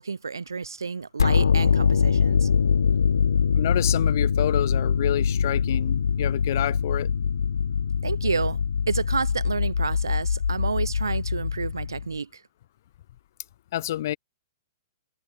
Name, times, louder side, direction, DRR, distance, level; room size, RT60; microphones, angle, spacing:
voice 1, 0.0-2.5 8.0-8.6 8.9-12.4, right 5 dB, 75° right, 0.3 m, -30 dB
sound 1, 1.2-12.2, left 6 dB, 70° left, 0.4 m, -23 dB
voice 2, 3.5-7.1 13.7-14.2, left 13 dB, 50° left, 0.8 m, -28 dB
figure-of-eight pair, 115°, 2 cm